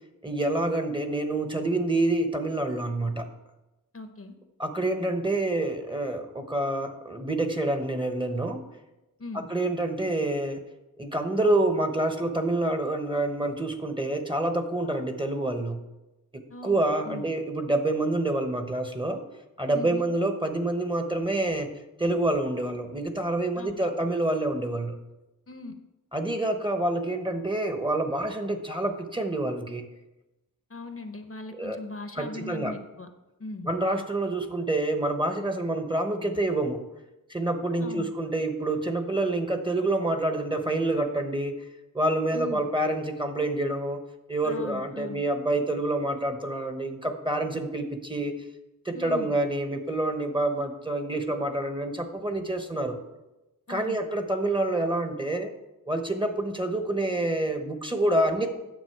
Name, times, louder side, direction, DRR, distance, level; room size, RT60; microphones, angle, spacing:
voice 1, 0.2-3.3 4.6-8.6 9.3-10.6 11.0-15.8 16.6-19.2 19.6-21.7 22.0-25.0 26.1-29.9 31.5-31.8 32.2-32.7 33.6-36.8 37.3-41.5 41.9-44.0 44.3-48.3 48.8-53.0 53.7-55.5 55.9-58.5, right 2 dB, 15° right, 6 dB, 1.0 m, -27 dB
voice 2, 3.9-4.4 9.2-9.4 16.5-17.3 19.7-20.1 23.6-23.9 25.5-25.7 30.7-33.1 33.4-33.7 37.8-38.1 42.3-42.6 44.4-45.2 48.9-49.3 53.7-54.0, left 2 dB, 40° left, 7 dB, 0.8 m, -39 dB
9.6 x 7.1 x 4.7 m, 0.99 s
wide cardioid pair, 70°, 35 cm